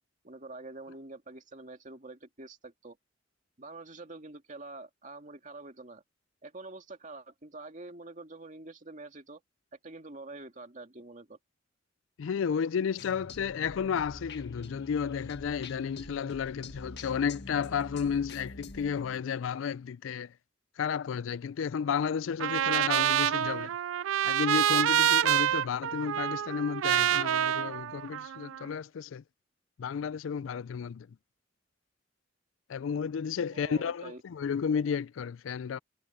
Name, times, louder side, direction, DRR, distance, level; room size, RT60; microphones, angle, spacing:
voice 1, 0.2-3.0 3.6-6.0 6.4-9.4 9.8-11.4 33.5-34.2, right 2 dB, 40° right, 2.2 m, -46 dB
voice 2, 12.2-20.3 20.8-23.8 24.2-29.2 29.8-31.1 32.7-35.8, left 7 dB, 85° left, 0.4 m, -32 dB
sound 1, 13.0-19.5, left 2 dB, 60° left, 1.6 m, -45 dB
Trumpet, 22.4-28.6, right 10 dB, 85° right, 0.3 m, -27 dB
head